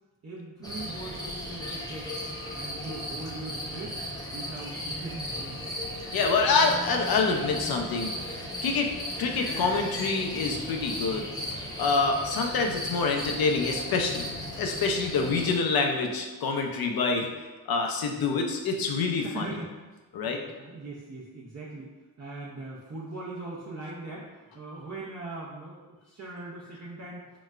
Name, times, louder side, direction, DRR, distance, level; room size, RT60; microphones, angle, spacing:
voice 1, 0.2-2.1 2.5-4.0 4.3-5.7 17.9-18.0 19.2-21.9 22.2-27.4, right 2 dB, 45° right, -6 dB, 0.6 m, -40 dB
sound 1, 0.6-15.6, left 1 dB, 10° left, 0.7 m, -36 dB
voice 2, 6.1-8.2 8.6-8.9 9.2-11.3 11.8-14.3 14.6-17.3 17.7-19.6 20.1-20.4, left 4 dB, 75° left, 3 dB, 0.6 m, -26 dB
3.9 x 2.1 x 2.3 m, 1.2 s
cardioid pair, 55°, 37 cm